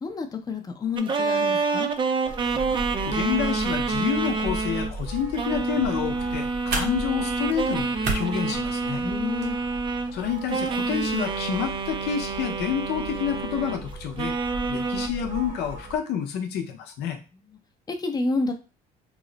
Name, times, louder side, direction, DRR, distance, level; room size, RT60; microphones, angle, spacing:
voice 1, 0.0-1.9 8.9-9.6 17.9-18.5, left 3 dB, 25° left, 5 dB, 0.5 m, -29 dB
sound 1, 1.0-4.9 5.3-10.2 10.5-13.8 14.2-15.1, right 4 dB, 30° right, 0.4 m, -27 dB
sound 2, 2.2-16.0, right 2 dB, 50° right, 0.8 m, -38 dB
voice 2, 3.1-9.0 10.1-14.4 14.7-17.2, left 8 dB, 80° left, 4 dB, 0.6 m, -29 dB
sound 3, 5.6-9.6, right 3 dB, 75° right, 0.9 m, -35 dB
3.0 x 2.0 x 3.8 m, 0.32 s
cardioid pair, 110°, 17 cm